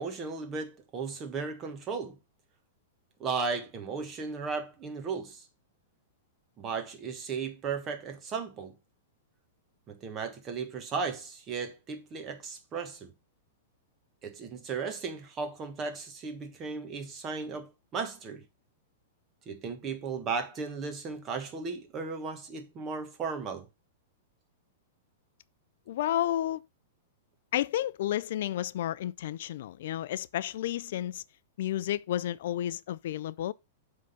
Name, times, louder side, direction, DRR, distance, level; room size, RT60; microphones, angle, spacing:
voice 1, 0.0-2.2 3.2-5.5 6.6-8.7 9.9-13.1 14.2-18.4 19.4-23.7, right 5 dB, 25° right, 1.4 m, -35 dB
voice 2, 25.9-26.6 27.5-31.2 31.6-33.5, left 12 dB, 65° left, 0.3 m, -31 dB
7.4 x 3.7 x 5.6 m
supercardioid pair, 150°, 0 cm